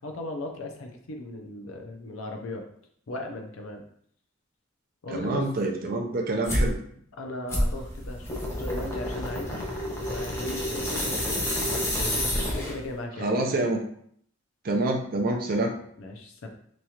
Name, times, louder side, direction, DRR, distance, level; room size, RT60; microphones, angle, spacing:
voice 1, 0.0-2.6 3.1-3.8 5.0-5.5 7.2-12.1 12.5-13.7 16.0-16.5, left 2 dB, 75° left, 3 dB, 0.5 m, -37 dB
voice 2, 5.1-6.8 13.2-13.8 14.6-15.7, right 2 dB, 45° right, 3 dB, 0.4 m, -26 dB
sound 1, 6.4-6.7 7.5-12.9, equal, 15° left, 0.5 m, -29 dB
3.0 x 2.3 x 2.8 m, 0.64 s
head